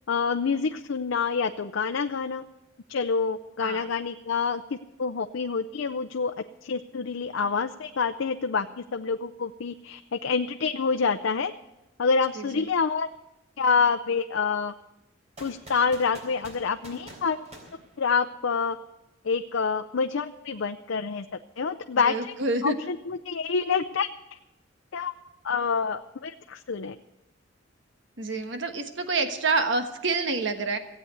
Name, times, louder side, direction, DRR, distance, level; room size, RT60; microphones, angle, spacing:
voice 1, 0.1-2.4 2.9-4.6 5.0-6.3 6.6-11.5 12.0-13.1 13.6-14.7 15.4-17.4 18.0-18.8 19.2-21.3 21.6-22.3 22.6-24.1 24.9-25.1 25.4-27.0, left 5 dB, 85° left, 7 dB, 0.6 m, -27 dB
voice 2, 12.3-12.7 22.0-22.8 28.2-30.8, right 3 dB, 70° right, 7 dB, 1.3 m, -27 dB
sound 1, 15.4-18.5, right 1 dB, 35° right, 3.6 m, -47 dB
16.0 x 8.4 x 8.0 m, 0.96 s
head